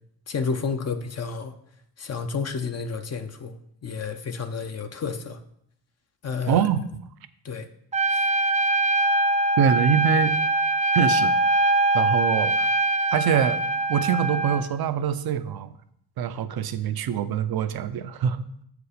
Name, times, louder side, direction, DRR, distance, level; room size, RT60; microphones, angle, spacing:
voice 1, 0.3-1.5 2.0-5.4 6.2-6.7 7.4-7.7 8.1-8.3, left 5 dB, 40° left, 0.7 m, -31 dB
voice 2, 6.5-6.8 9.6-10.3 10.9-11.4 11.9-12.7 13.1-13.6 13.9-15.7 16.2-18.4, right 8 dB, 60° right, 0.7 m, -24 dB
Trumpet, 7.9-14.6, right 2 dB, 20° right, 0.4 m, -22 dB
7.5 x 5.0 x 5.0 m
cardioid pair, 90°, 41 cm